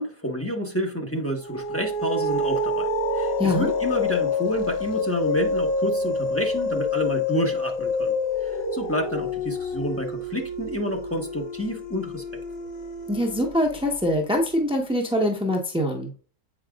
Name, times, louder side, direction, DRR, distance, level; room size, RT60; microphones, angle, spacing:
voice 1, 0.0-8.1 8.4-12.3, equal, 10° left, 0 dB, 0.8 m, -29 dB
sound 1, 1.4-14.3, left 2 dB, 90° left, 1.8 m, -28 dB
voice 2, 3.4-3.7 13.1-16.1, left 1 dB, 5° right, 1 dB, 0.4 m, -24 dB
8.0 x 5.0 x 2.3 m, 0.39 s
omnidirectional pair, 1.9 m